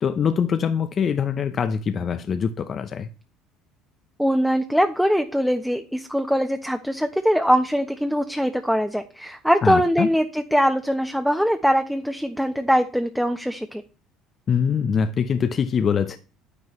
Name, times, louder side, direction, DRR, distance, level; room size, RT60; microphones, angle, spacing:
voice 1, 0.0-3.1 9.6-10.1 14.5-16.2, left 7 dB, 45° left, 0.9 m, -23 dB
voice 2, 4.2-13.8, equal, ahead, 1.2 m, -22 dB
10.5 x 9.7 x 3.3 m
hypercardioid pair, 65°, 0 cm